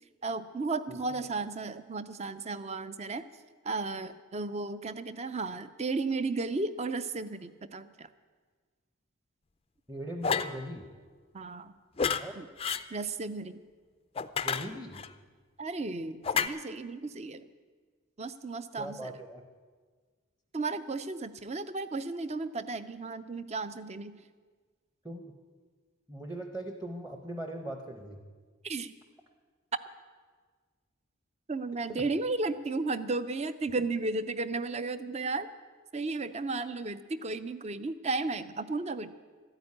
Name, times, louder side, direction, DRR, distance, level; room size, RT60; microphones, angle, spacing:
voice 1, 0.2-3.2 3.6-8.1 11.3-11.7 12.4-12.5 12.9-13.6 15.6-17.4 18.2-19.1 20.5-24.1 28.6-28.9 31.5-35.5 35.9-39.1, right 3 dB, 30° right, 13 dB, 0.5 m, -34 dB
voice 2, 9.9-10.8 12.1-12.4 14.4-15.1 18.8-19.4 25.0-25.3 26.1-28.2 31.9-32.0, right 1 dB, 10° right, 5 dB, 0.8 m, -40 dB
sound 1, 10.2-10.6 12.0-12.2 12.6-12.8 14.2-15.1 16.2-16.5, left 6 dB, 25° left, 0.4 m, -29 dB
13.0 x 9.0 x 9.7 m, 1.5 s
head